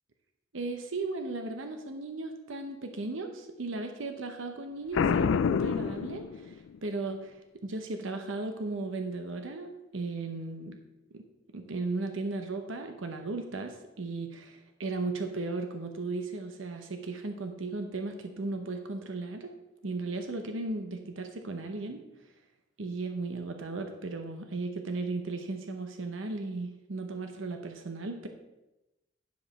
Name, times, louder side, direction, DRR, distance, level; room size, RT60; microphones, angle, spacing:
voice 1, 0.5-10.8 11.1-11.2 11.5-19.5 19.8-22.0 22.8-28.3, right 3 dB, 90° right, 6 dB, 0.9 m, -36 dB
Boom, 4.9-6.8, left 6 dB, 80° left, 0.4 m, -27 dB
10.5 x 5.1 x 5.8 m, 0.98 s
head